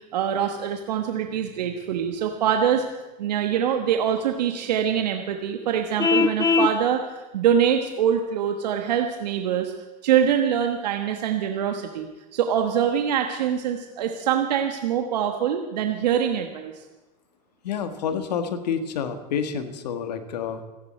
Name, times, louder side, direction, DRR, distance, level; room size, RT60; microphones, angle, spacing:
voice 1, 0.1-2.8 3.2-7.0 7.3-9.7 10.0-16.7, right 8 dB, 85° right, 5 dB, 1.3 m, -24 dB
Vehicle horn car horn honking, 6.0-6.8, left 5 dB, 15° left, 0.4 m, -20 dB
voice 2, 17.6-20.6, left 7 dB, 85° left, 8 dB, 1.7 m, -28 dB
27.5 x 10.5 x 4.4 m, 1.1 s
hypercardioid pair, 85°, 21 cm